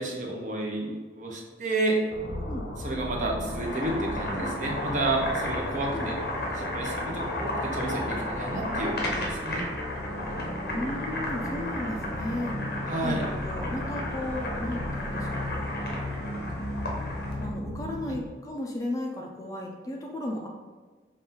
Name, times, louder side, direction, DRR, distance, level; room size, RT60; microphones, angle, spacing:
voice 1, 0.0-2.0 2.8-6.2 6.5-9.7 12.9-13.2, right 2 dB, 45° right, 0 dB, 0.7 m, -30 dB
sound 1, 2.1-18.3, left 1 dB, 90° left, 0.7 m, -36 dB
Boiling, 3.4-17.5, left 1 dB, 65° left, 1.0 m, -34 dB
voice 2, 10.6-12.5 13.0-15.7 17.4-20.5, left 1 dB, 20° left, -1 dB, 0.5 m, -34 dB
5.4 x 2.6 x 3.8 m, 1.4 s
head